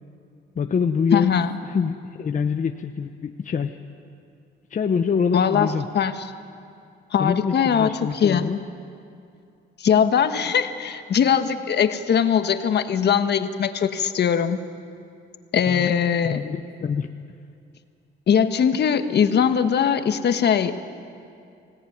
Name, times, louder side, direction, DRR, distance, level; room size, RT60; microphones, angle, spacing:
voice 1, 0.6-1.3 1.6-3.8 4.7-5.9 7.2-8.6 15.7-15.9 16.2-17.1, left 6 dB, 40° left, 6 dB, 0.9 m, -25 dB
voice 2, 1.1-1.6 5.3-6.2 7.1-8.5 9.8-14.6 15.5-16.4 18.3-20.7, left 7 dB, 55° left, 9 dB, 1.4 m, -21 dB
24.5 x 17.5 x 9.4 m, 2.5 s
cardioid pair, 90°, 20 cm